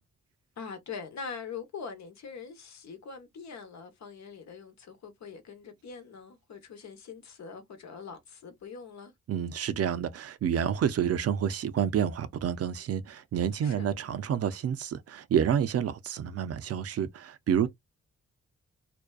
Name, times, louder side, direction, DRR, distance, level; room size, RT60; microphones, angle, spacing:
voice 1, 0.6-9.1 13.6-13.9 17.6-17.7, left 5 dB, 65° left, 1.0 m, -43 dB
voice 2, 9.3-17.7, right 8 dB, 55° right, 0.5 m, -29 dB
2.5 x 2.2 x 2.2 m
supercardioid pair, 45°, 29 cm